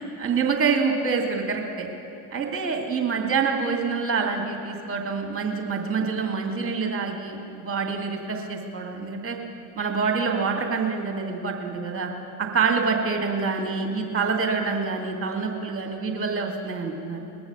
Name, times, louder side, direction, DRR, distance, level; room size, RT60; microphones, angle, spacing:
voice 1, 0.2-1.9 2.3-9.4 9.7-12.1 12.4-17.2, right 5 dB, 25° right, 1 dB, 2.8 m, -26 dB
20.5 x 7.0 x 7.1 m, 2.9 s
hypercardioid pair, 75°, 48 cm